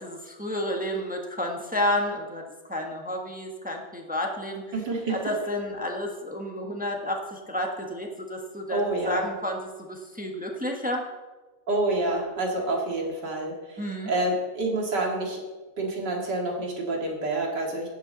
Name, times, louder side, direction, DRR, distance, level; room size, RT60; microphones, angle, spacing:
voice 1, 0.0-2.4 2.7-4.6 5.1-9.6 9.9-11.0 13.8-14.1, left 1 dB, 5° right, 1 dB, 1.2 m, -30 dB
voice 2, 4.7-5.2 8.7-9.2 11.7-15.4 15.8-17.9, right 2 dB, 60° right, 0 dB, 2.9 m, -28 dB
14.5 x 11.5 x 4.1 m, 1.2 s
omnidirectional pair, 2.1 m